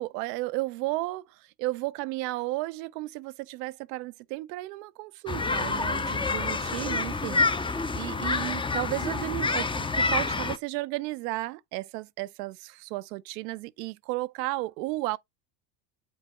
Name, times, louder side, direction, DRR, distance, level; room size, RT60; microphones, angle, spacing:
voice 1, 0.0-15.2, right 19 dB, 75° right, 0.7 m, -34 dB
sound 1, 5.3-10.6, left 3 dB, 10° left, 0.5 m, -28 dB
7.9 x 4.1 x 3.1 m
supercardioid pair, 90°, 49 cm